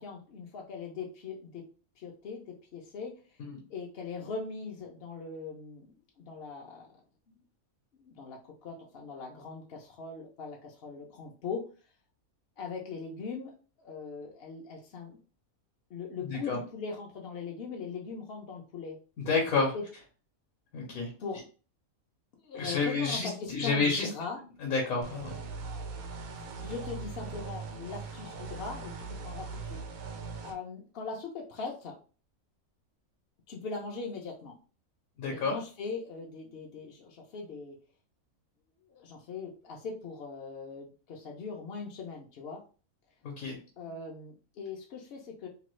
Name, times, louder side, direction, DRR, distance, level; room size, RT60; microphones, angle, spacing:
voice 1, 0.0-1.6 2.0-3.1 3.7-5.9 6.2-6.9 7.3-7.4 7.9-11.6 12.6-13.5 13.8-15.2 15.9-19.0 19.7-19.8 21.2-21.4 22.3-24.4 26.3-29.8 30.4-32.0 33.5-34.6 35.3-37.8 38.9-42.6 43.8-45.5, left 4 dB, 60° left, 0 dB, 0.6 m, -40 dB
voice 2, 19.2-19.7 20.7-21.1 22.5-24.1 24.6-25.3 35.2-35.6 43.2-43.6, left 4 dB, 75° left, -1 dB, 1.2 m, -29 dB
sound 1, 25.0-30.5, right 4 dB, 75° right, 1.0 m, -40 dB
2.9 x 2.3 x 3.0 m, 0.36 s
omnidirectional pair, 1.5 m